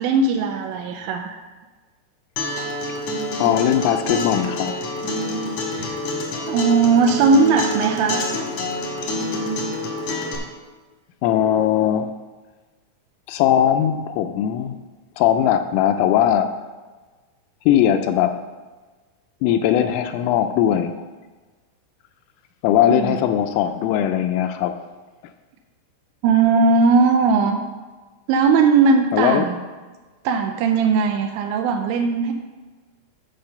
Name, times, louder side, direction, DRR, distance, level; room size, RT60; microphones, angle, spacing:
voice 1, 0.0-1.4 5.7-5.9 6.5-8.3 22.9-23.2 26.2-27.6 28.3-29.5 30.2-32.3, right 4 dB, 90° right, 4 dB, 2.6 m, -18 dB
Acoustic guitar, 2.4-10.3, left 1 dB, 65° left, 1.7 m, -27 dB
voice 2, 3.4-4.7 11.2-12.1 13.3-14.8 15.2-16.5 17.7-18.3 19.4-21.1 22.6-24.7 29.1-29.5, left 10 dB, 85° left, 7 dB, 3.1 m, -19 dB
10.5 x 4.8 x 6.7 m, 1.3 s
omnidirectional pair, 5.9 m